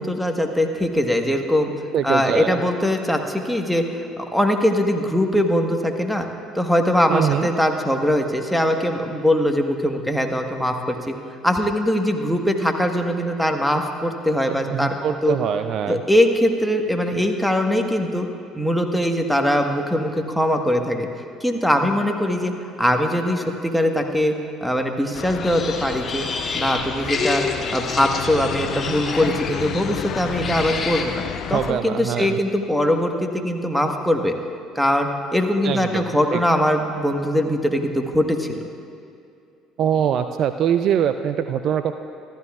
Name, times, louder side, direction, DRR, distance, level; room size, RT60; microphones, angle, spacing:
voice 1, 0.0-1.7 2.0-6.3 6.5-11.1 11.4-14.9 15.2-15.4 15.9-18.3 18.5-21.1 21.4-22.5 22.8-26.3 26.5-27.4 27.7-31.2 31.5-34.4 34.7-38.6, equal, ahead, 3 dB, 1.5 m, -21 dB
voice 2, 1.9-2.6 7.1-7.5 14.7-16.0 31.5-32.4 35.6-36.1 36.3-36.4 39.8-41.9, right 9 dB, 55° right, 9 dB, 0.5 m, -23 dB
sound 1, 25.1-31.7, left 8 dB, 55° left, 0.6 m, -31 dB
sound 2, 25.4-31.0, left 4 dB, 30° left, 1.5 m, -29 dB
27.0 x 13.0 x 2.5 m, 2.5 s
figure-of-eight pair, 55°, 0 cm